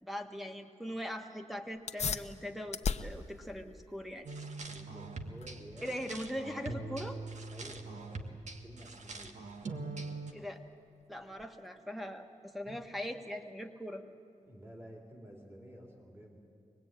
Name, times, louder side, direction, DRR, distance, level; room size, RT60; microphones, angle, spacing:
voice 1, 0.0-4.3 5.8-7.2 10.3-10.6 11.1-14.0, equal, ahead, 5 dB, 1.6 m, -41 dB
sound 1, 1.7-11.8, left 5 dB, 60° left, 0.9 m, -43 dB
sound 2, 4.2-10.3, right 3 dB, 65° right, 1.7 m, -43 dB
voice 2, 4.7-6.0 7.5-9.4 9.7-10.3 12.7-13.0 14.4-16.4, equal, 20° right, 0 dB, 3.5 m, -52 dB
24.5 x 20.5 x 9.1 m, 2.4 s
wide cardioid pair, 105°, 13 cm